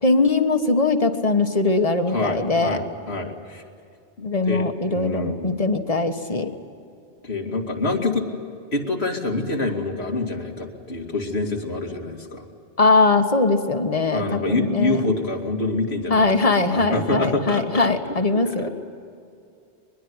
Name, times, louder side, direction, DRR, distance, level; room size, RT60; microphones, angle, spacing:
voice 1, 0.0-2.8 4.2-6.5 12.8-15.0 16.1-18.7, left 3 dB, 35° left, 7 dB, 1.5 m, -21 dB
voice 2, 2.1-3.6 4.2-5.6 7.2-8.3 8.7-12.4 14.1-18.1 18.4-18.7, left 2 dB, 85° left, 1 dB, 2.8 m, -26 dB
23.0 x 21.5 x 9.7 m, 2.4 s
omnidirectional pair, 1.0 m